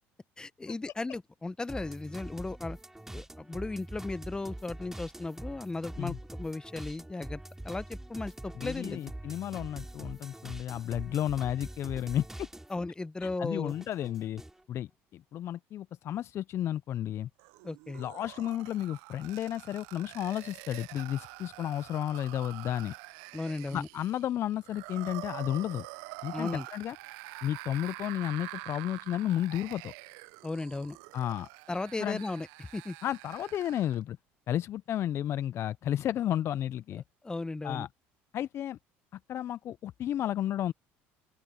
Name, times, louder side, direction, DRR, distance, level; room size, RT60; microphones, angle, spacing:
voice 1, 0.4-2.8 3.1-9.1 12.7-13.7 17.6-18.0 23.3-23.9 26.3-26.7 30.4-31.0 31.7-33.0 36.9-37.9, left 3 dB, 15° left, 0.7 m, -36 dB
sound 1, 1.7-12.9 13.2-14.6, right 1 dB, 5° right, 3.2 m, -44 dB
voice 2, 8.6-12.5 13.2-14.4 14.7-17.3 18.0-22.9 23.7-25.9 26.2-27.0 27.4-29.9 31.1-31.5 32.0-32.2 33.0-34.2 34.5-37.0 37.6-37.9 38.3-38.8 39.3-40.7, left 11 dB, 50° left, 0.4 m, -32 dB
sound 2, 17.4-34.0, right 24 dB, 80° right, 0.6 m, -46 dB
open air
supercardioid pair, 90°, 6 cm